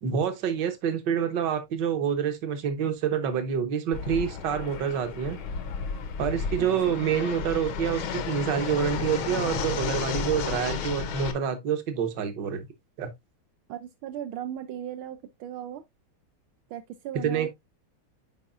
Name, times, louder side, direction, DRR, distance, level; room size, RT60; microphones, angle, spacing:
voice 1, 0.0-5.4 6.2-12.7 13.0-13.1 17.2-17.5, right 7 dB, 60° right, 1.7 m, -27 dB
Fixed-wing aircraft airplane, 3.9-11.3, left 6 dB, 75° left, 1.8 m, -32 dB
voice 2, 13.7-15.8 16.7-17.5, right 10 dB, 80° right, 1.5 m, -37 dB
10.0 x 4.7 x 2.5 m
omnidirectional pair, 2.3 m